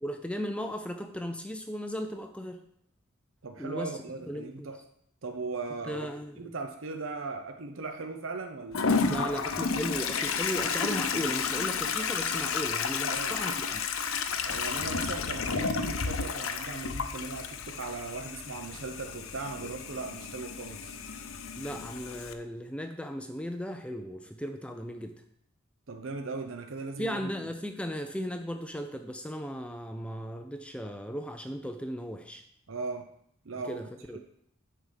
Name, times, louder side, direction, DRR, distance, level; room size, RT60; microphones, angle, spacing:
voice 1, 0.0-2.6 3.6-3.9 4.3-4.7 5.8-6.4 9.1-13.8 21.5-25.2 27.0-32.4 33.7-34.2, equal, 5° left, 6 dB, 0.5 m, -36 dB
voice 2, 3.4-4.8 5.2-6.1 6.4-9.3 13.1-13.4 14.4-21.0 25.9-27.3 32.7-33.1 33.4-33.8 34.1-34.2, right 3 dB, 70° right, 6 dB, 0.7 m, -38 dB
Toilet flush, 8.7-22.3, left 5 dB, 80° left, 0.7 m, -32 dB
9.6 x 4.7 x 5.6 m, 0.70 s
head